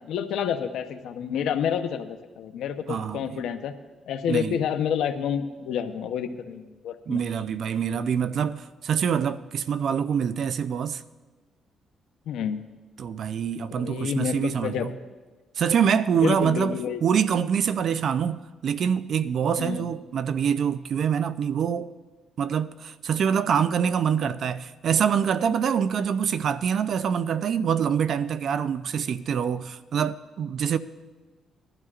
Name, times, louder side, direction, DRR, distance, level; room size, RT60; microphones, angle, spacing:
voice 1, 0.0-3.7 4.1-7.2 12.3-12.6 13.7-14.9 16.2-17.0 19.6-19.9, left 8 dB, 80° left, 0.8 m, -29 dB
voice 2, 2.9-3.4 4.3-4.6 7.1-11.0 13.0-14.9 15.6-21.9 22.4-30.8, right 7 dB, 60° right, 0.5 m, -25 dB
20.0 x 12.0 x 2.5 m
cardioid pair, 90°, 0 cm